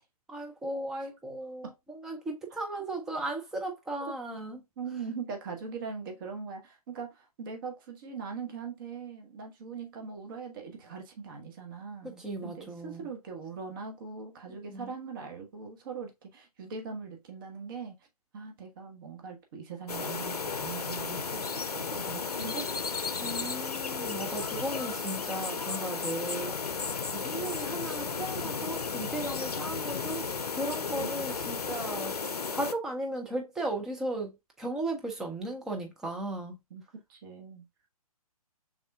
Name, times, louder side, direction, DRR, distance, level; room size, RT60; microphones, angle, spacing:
voice 1, 0.3-4.6 12.0-13.1 14.5-14.9 23.2-26.6 27.1-30.3 30.5-36.6, right 2 dB, ahead, 0.3 m, -36 dB
voice 2, 4.8-17.9 18.3-21.4 21.7-22.7 31.0-31.2 36.7-36.8 37.1-37.6, right 5 dB, 35° right, 1.0 m, -41 dB
sound 1, 19.9-32.7, left 5 dB, 85° left, 0.5 m, -34 dB
5.2 x 3.6 x 2.3 m
figure-of-eight pair, 130°, 19 cm